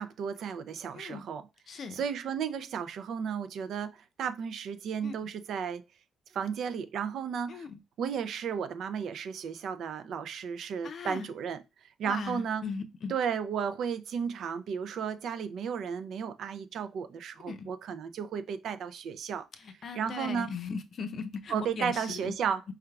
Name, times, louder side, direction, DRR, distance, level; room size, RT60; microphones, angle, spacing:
voice 1, 0.0-1.5 1.7-5.8 6.3-7.7 8.0-11.6 12.0-12.6 13.1-19.5 19.9-20.5 21.5-22.6, right 7 dB, 70° right, 0.4 m, -34 dB
voice 2, 0.9-1.2 1.7-2.0 5.0-5.1 7.5-7.8 10.8-11.3 12.0-13.1 17.5-17.7 19.6-22.3, left 5 dB, 55° left, 0.5 m, -38 dB
4.7 x 3.3 x 2.3 m
cardioid pair, 90°, 0 cm